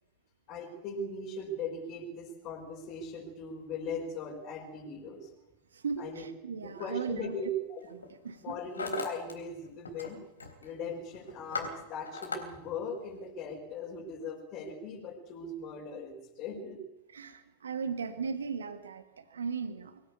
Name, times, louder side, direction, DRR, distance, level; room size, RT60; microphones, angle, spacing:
voice 1, 0.5-5.3 6.0-6.3 6.6-7.9 8.4-10.2 10.6-16.8, left 2 dB, 40° left, 2 dB, 5.1 m, -39 dB
voice 2, 5.7-7.4 7.9-8.6 17.1-20.0, right 5 dB, 75° right, 10 dB, 1.8 m, -37 dB
Hammer, 6.8-7.0 7.8-8.1 8.4-9.3 9.6-10.1 10.4-10.7 11.1-12.4, left 4 dB, 85° left, 3.9 m, -38 dB
24.5 x 16.5 x 8.5 m, 0.88 s
figure-of-eight pair, 95°, 0 cm